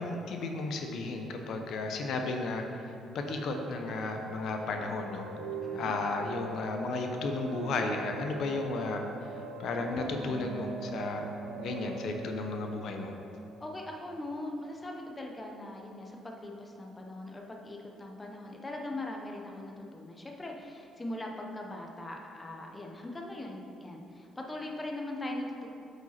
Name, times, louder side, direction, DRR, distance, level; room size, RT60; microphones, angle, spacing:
voice 1, 0.0-2.6 3.1-5.3 5.7-9.0 9.6-11.3 11.6-13.1, left 3 dB, 60° left, 3 dB, 0.6 m, -34 dB
sound 1, 3.1-14.8, right 4 dB, 85° right, 0.5 m, -42 dB
voice 2, 5.6-5.9 13.6-25.7, left 1 dB, 15° left, 1 dB, 0.7 m, -40 dB
8.0 x 4.9 x 4.2 m, 2.7 s
cardioid pair, 140°, 0 cm